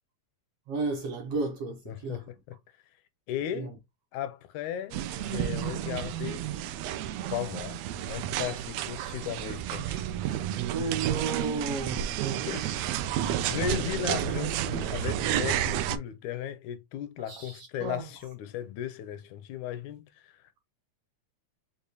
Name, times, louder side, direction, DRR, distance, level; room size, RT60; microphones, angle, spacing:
voice 1, 0.7-2.2 3.6-3.7 10.7-12.6 17.3-18.0, right 4 dB, 70° right, 1.6 m, -33 dB
voice 2, 1.9-2.6 3.3-3.7 4.1-6.5 7.2-7.8 8.1-10.1 12.5-20.4, left 10 dB, 80° left, 1.9 m, -36 dB
sound 1, 4.9-16.0, right 11 dB, 85° right, 1.5 m, -31 dB
6.7 x 2.4 x 2.9 m
omnidirectional pair, 3.5 m